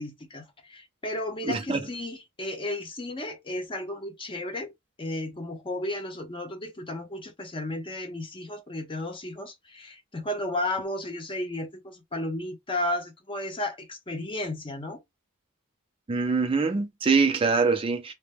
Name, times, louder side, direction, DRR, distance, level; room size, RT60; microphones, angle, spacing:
voice 1, 0.0-4.7 5.0-15.0, left 1 dB, 25° left, 0.7 m, -33 dB
voice 2, 1.5-1.8 16.1-18.1, right 4 dB, 25° right, 0.4 m, -24 dB
2.8 x 2.2 x 3.3 m
head